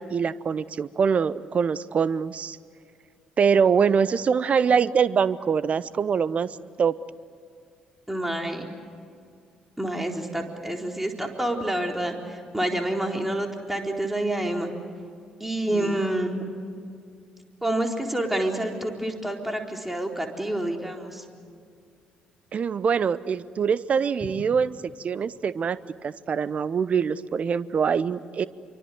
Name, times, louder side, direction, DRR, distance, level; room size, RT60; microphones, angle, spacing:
voice 1, 0.0-2.6 3.4-6.5 6.8-6.9 15.7-16.0 22.5-24.7 25.0-28.5, right 6 dB, 45° right, 18 dB, 0.8 m, -24 dB
voice 2, 8.1-8.7 9.8-14.7 15.4-16.4 17.6-21.2, right 1 dB, 5° right, 2 dB, 4.1 m, -28 dB
26.5 x 24.0 x 8.0 m, 2.3 s
figure-of-eight pair, 45°, 3 cm